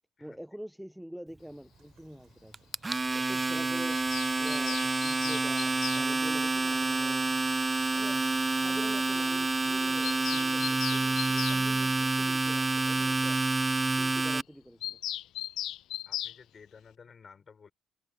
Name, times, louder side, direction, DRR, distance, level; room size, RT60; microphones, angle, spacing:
voice 1, 0.2-2.6 3.1-4.0 4.4-7.3 7.9-8.3 8.5-13.4 14.0-15.0, equal, ahead, 0.8 m, -46 dB
Rain, 1.7-7.1, right 11 dB, 75° right, 7.2 m, -67 dB
Domestic sounds home sounds, 2.5-14.4, right 3 dB, 20° right, 0.4 m, -28 dB
Bird vocalization bird call bird song, 3.9-6.0 7.5-7.6 7.8-7.9 8.2-8.3 8.6-8.7 8.9-9.0 9.2-9.4 9.6-11.6 14.8-16.4, left 13 dB, 80° left, 0.5 m, -37 dB
voice 2, 16.1-17.7, left 6 dB, 45° left, 6.8 m, -54 dB
cardioid pair, 90°, 0 cm